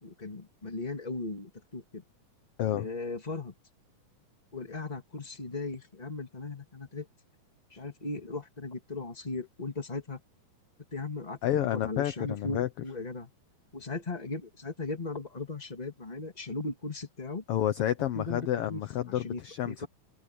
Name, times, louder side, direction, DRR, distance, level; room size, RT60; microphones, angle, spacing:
voice 1, 0.0-2.0 2.8-3.5 4.5-7.1 7.7-10.2 10.9-13.3 13.7-17.4 18.1-18.8 19.2-19.9, left 3 dB, 15° left, 2.1 m, -37 dB
voice 2, 11.4-12.7 17.5-19.9, left 12 dB, 70° left, 1.4 m, -29 dB
omnidirectional pair, 3.6 m